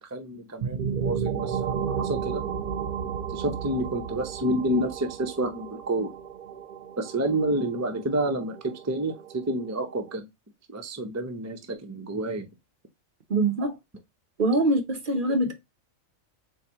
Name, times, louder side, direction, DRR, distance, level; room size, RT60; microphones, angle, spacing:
voice 1, 0.0-2.4 3.3-6.1 7.0-10.3 10.7-12.5, right 1 dB, 25° right, 0.4 m, -29 dB
sound 1, 0.6-10.2, right 7 dB, 90° right, 0.4 m, -33 dB
voice 2, 13.3-13.7 14.4-15.5, right 2 dB, 45° right, 0.8 m, -23 dB
4.6 x 3.4 x 2.9 m
omnidirectional pair, 1.4 m